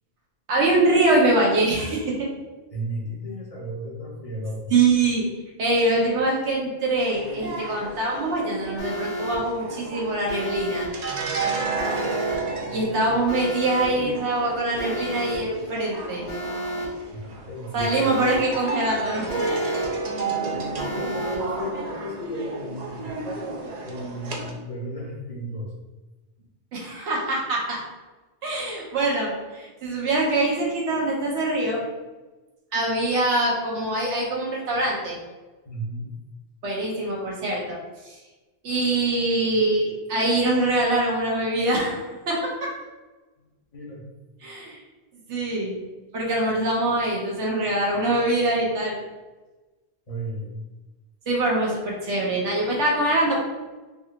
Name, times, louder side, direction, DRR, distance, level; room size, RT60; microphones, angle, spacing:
voice 1, 0.5-2.3 4.7-5.2 5.6-10.9 12.7-16.2 17.7-19.2 26.7-27.8 28.4-31.8 32.7-35.2 36.6-37.8 38.0-38.2 38.6-42.7 44.4-44.8 45.3-45.7 46.1-49.0 51.3-53.4, right 2 dB, 90° right, -2 dB, 1.2 m, -23 dB
voice 2, 2.7-4.7 12.7-13.1 17.1-18.1 20.5-23.1 23.8-25.7 35.6-36.0 43.4-44.0 50.1-50.6, right 1 dB, 35° left, -3 dB, 0.8 m, -34 dB
sound 1, 7.1-24.5, right 3 dB, 50° right, 0.5 m, -32 dB
Alarm, 8.8-9.4 10.3-10.9 11.8-12.4 13.3-13.9 14.8-15.4 16.3-16.9 17.8-18.4 19.3-19.9 20.8-21.4, right 1 dB, 75° left, 1.5 m, -31 dB
3.9 x 2.8 x 2.4 m, 1.2 s
omnidirectional pair, 1.1 m